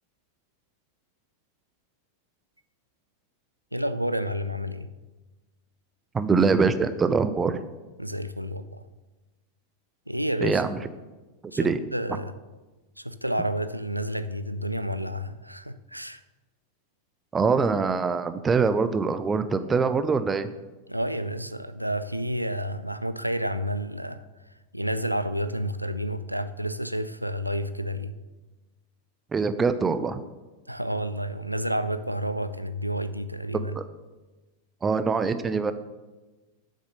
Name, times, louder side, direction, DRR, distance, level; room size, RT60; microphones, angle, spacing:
voice 1, 3.7-4.9 8.0-8.8 10.1-10.6 11.5-12.3 13.0-16.2 20.9-24.2 24.7-28.2 30.7-33.8, equal, 90° right, 12 dB, 0.5 m, -30 dB
voice 2, 6.1-7.6 10.4-10.8 11.6-11.8 17.3-20.5 29.3-30.2 33.8-33.9 34.8-35.7, right 5 dB, 15° right, 12 dB, 0.5 m, -23 dB
8.0 x 6.4 x 6.4 m, 1.2 s
figure-of-eight pair, 90°, 0 cm